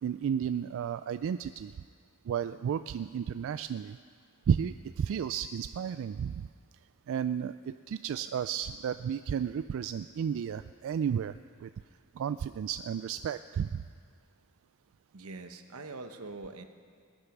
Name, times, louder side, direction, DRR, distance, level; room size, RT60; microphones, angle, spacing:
voice 1, 0.0-1.7 2.3-4.0 4.5-6.5 7.1-11.7 12.2-13.8, right 8 dB, 65° right, 12 dB, 0.3 m, -33 dB
voice 2, 15.1-16.6, right 3 dB, 90° right, 7 dB, 1.0 m, -43 dB
20.0 x 10.0 x 6.0 m, 2.2 s
head